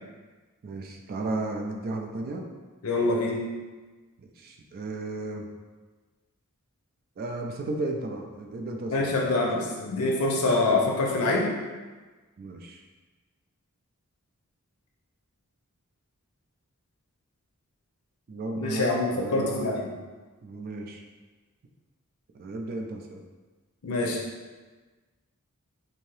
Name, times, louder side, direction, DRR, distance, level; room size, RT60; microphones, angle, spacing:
voice 1, 0.6-2.5 4.2-5.5 7.2-9.1 9.4-9.7 12.4-12.8 18.3-20.0 20.4-21.0 22.3-23.2, right 2 dB, 45° right, 2 dB, 0.3 m, -34 dB
voice 2, 2.8-3.4 8.9-11.5 18.6-19.8 23.8-24.2, left 2 dB, 75° left, -2 dB, 0.6 m, -25 dB
2.7 x 2.7 x 3.1 m, 1.3 s
head